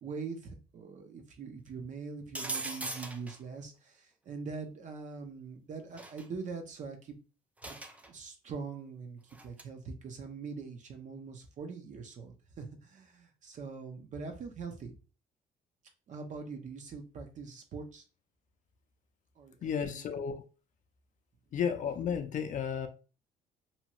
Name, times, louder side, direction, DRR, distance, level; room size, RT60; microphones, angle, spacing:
voice 1, 0.0-7.2 7.6-7.8 8.1-14.9 16.1-18.0 19.4-20.1, right 5 dB, 45° right, 5 dB, 0.7 m, -43 dB
sound 1, 2.3-3.4 6.0-6.2 7.6-8.1 9.3-9.6, right 2 dB, 10° right, 0.4 m, -39 dB
voice 2, 19.6-20.4 21.5-22.9, left 7 dB, 50° left, 7 dB, 0.5 m, -33 dB
2.8 x 2.3 x 2.9 m, 0.34 s
cardioid pair, 110°, 17 cm